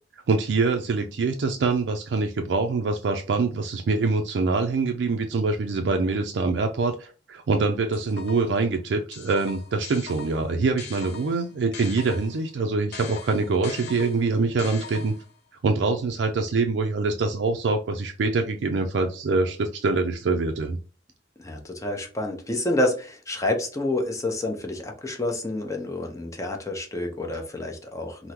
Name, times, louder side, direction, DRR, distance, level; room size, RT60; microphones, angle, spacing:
voice 1, 0.3-15.2 15.6-20.8, right 3 dB, 70° right, 4 dB, 0.4 m, -24 dB
sound 1, 7.9-8.6 9.1-12.5 12.9-15.4, left 5 dB, 65° left, 0.6 m, -41 dB
voice 2, 21.4-28.3, left 1 dB, 20° left, 2 dB, 0.7 m, -28 dB
3.6 x 2.0 x 2.9 m, 0.37 s
head